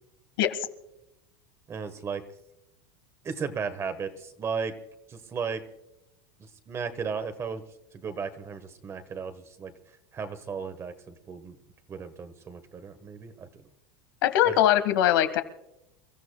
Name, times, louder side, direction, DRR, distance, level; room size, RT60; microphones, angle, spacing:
voice 1, 1.7-2.2 3.2-4.7 5.1-5.6 6.4-7.6 7.9-9.7 10.1-11.5 11.9-13.5 14.4-14.6, right 5 dB, 25° right, 10 dB, 1.3 m, -35 dB
voice 2, 14.2-15.4, left 12 dB, 80° left, 9 dB, 1.5 m, -22 dB
29.0 x 14.0 x 2.3 m, 0.89 s
supercardioid pair, 145°, 12 cm